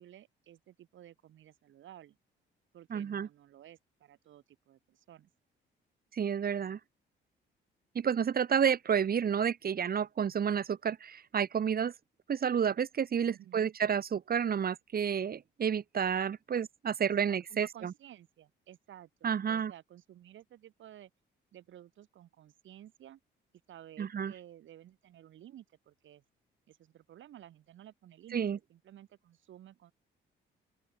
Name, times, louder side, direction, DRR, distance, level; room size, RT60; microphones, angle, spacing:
voice 1, 0.0-2.2 2.7-5.3 13.2-13.7 16.5-16.7 17.0-21.1 21.5-23.2 23.7-26.2 26.7-29.9, right 12 dB, 75° right, 7.3 m, -54 dB
voice 2, 2.9-3.3 6.1-6.8 7.9-11.9 12.3-17.9 19.2-19.7 24.0-24.3 28.3-28.6, right 7 dB, 50° right, 2.3 m, -30 dB
open air
cardioid pair, 90°, 20 cm